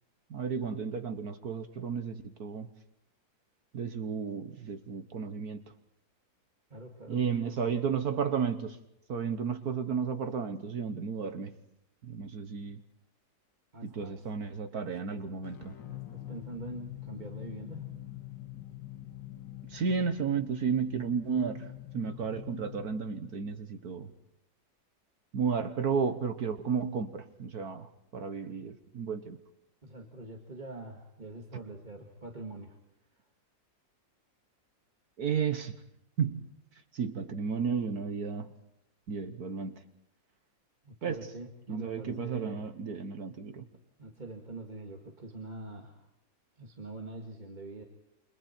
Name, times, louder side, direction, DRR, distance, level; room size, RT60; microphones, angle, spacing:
voice 1, 0.3-2.7 3.7-5.6 7.1-8.8 9.1-11.6 12.0-12.8 13.8-15.7 19.7-24.1 25.3-29.4 35.2-35.8 36.2-36.5 36.9-38.5 39.1-39.8 41.0-41.3 41.7-43.7, right 6 dB, 60° right, 9 dB, 1.6 m, -33 dB
voice 2, 6.7-7.2 13.7-14.2 15.1-15.2 15.9-18.0 29.8-32.8 40.8-42.6 44.0-46.1 46.6-47.8, right 2 dB, 25° right, 2 dB, 2.1 m, -44 dB
sound 1, 15.4-24.1, left 15 dB, 75° left, 2.3 m, -45 dB
29.0 x 26.0 x 4.4 m, 0.78 s
omnidirectional pair, 2.0 m